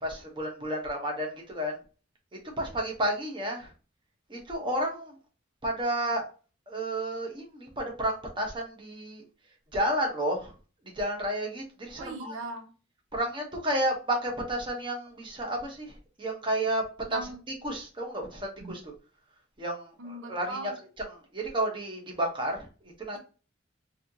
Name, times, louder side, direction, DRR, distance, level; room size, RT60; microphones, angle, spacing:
voice 1, 0.0-1.8 2.6-3.7 4.3-5.2 5.6-6.2 6.7-9.2 9.7-10.5 10.9-12.3 13.1-16.8 17.1-17.3 17.6-18.8 19.6-20.7 21.1-23.2, right 1 dB, 25° right, 0 dB, 1.0 m, -31 dB
voice 2, 12.0-12.7 17.1-17.4 18.6-18.7 20.0-20.8, right 2 dB, 85° right, 6 dB, 0.6 m, -39 dB
4.3 x 2.8 x 2.7 m, 0.35 s
head